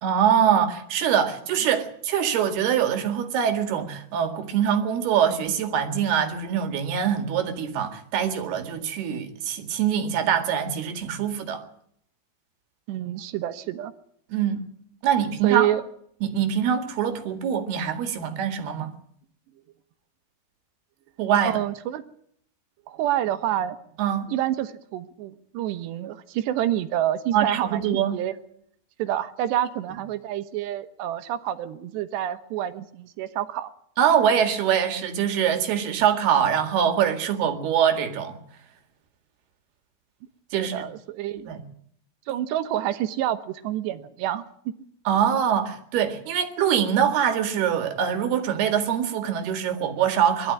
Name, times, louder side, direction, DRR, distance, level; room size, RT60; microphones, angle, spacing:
voice 1, 0.0-11.6 14.3-14.6 15.0-15.7 16.2-18.9 21.2-21.6 24.0-24.3 27.3-28.2 34.0-38.4 40.5-40.9 41.5-41.6 45.1-50.5, right 8 dB, 70° right, 3.9 m, -23 dB
voice 2, 12.9-13.9 15.4-15.8 21.4-22.0 22.9-23.8 24.3-28.3 29.0-33.7 40.5-41.5 42.3-44.7, right 12 dB, 90° right, 3.3 m, -28 dB
22.5 x 13.0 x 9.6 m
omnidirectional pair, 4.8 m